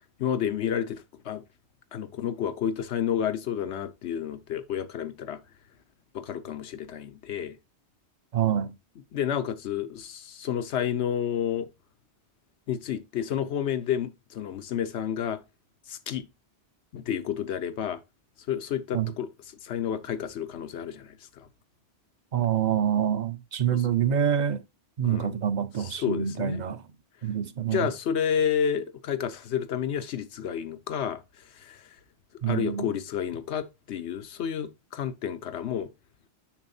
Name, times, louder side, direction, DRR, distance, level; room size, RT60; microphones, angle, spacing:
voice 1, 0.2-1.4 1.9-5.4 6.1-7.6 9.1-11.7 12.7-15.4 15.9-16.2 16.9-18.0 18.5-19.3 19.6-21.5 23.7-23.8 25.0-25.3 25.9-26.6 27.7-31.2 31.6-31.8 32.5-35.9, left 9 dB, 85° left, 1.0 m, -30 dB
voice 2, 8.3-8.7 18.9-19.1 22.3-24.6 25.0-26.8 27.2-27.9 32.4-32.9, right 9 dB, 50° right, 0.7 m, -26 dB
7.3 x 6.1 x 2.7 m
omnidirectional pair, 1.1 m